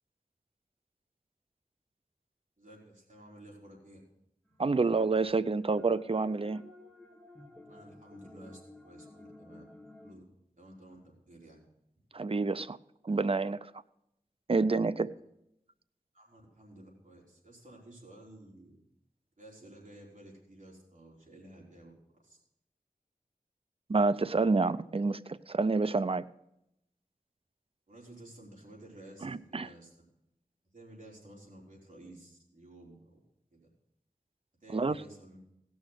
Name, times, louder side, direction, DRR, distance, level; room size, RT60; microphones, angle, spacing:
voice 1, 2.6-4.0 7.7-9.6 10.0-10.2 10.6-11.6 16.1-18.8 19.4-22.4 27.9-29.9 30.7-33.2 33.5-33.6 34.6-35.4, right 1 dB, 60° right, -3 dB, 4.2 m, -53 dB
voice 2, 4.6-6.7 12.1-12.8 13.0-13.7 14.5-15.1 23.9-26.3 29.2-29.7 34.7-35.0, right 3 dB, 40° right, 14 dB, 0.4 m, -28 dB
sound 1, 5.3-10.1, left 2 dB, 5° left, 1.7 m, -52 dB
17.0 x 6.3 x 6.4 m, 0.82 s
wide cardioid pair, 55°, 15 cm